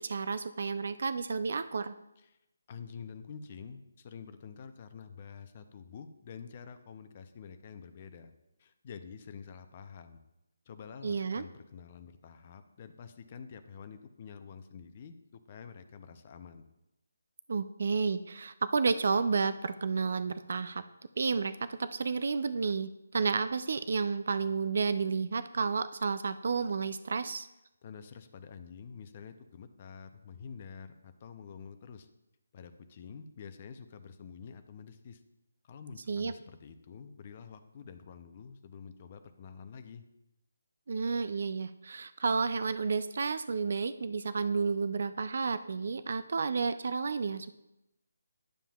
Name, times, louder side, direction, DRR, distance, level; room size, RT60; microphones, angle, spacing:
voice 1, 0.0-1.9 11.0-11.4 17.5-20.8 21.2-27.5 36.1-36.3 40.9-47.6, right 4 dB, 60° right, 13 dB, 0.4 m, -31 dB
voice 2, 2.7-8.3 8.6-10.2 10.7-16.6 27.8-32.1 32.5-35.2 35.6-40.0, left 6 dB, 30° left, 9 dB, 0.5 m, -48 dB
11.5 x 7.2 x 2.3 m, 0.91 s
hypercardioid pair, 165°, 0 cm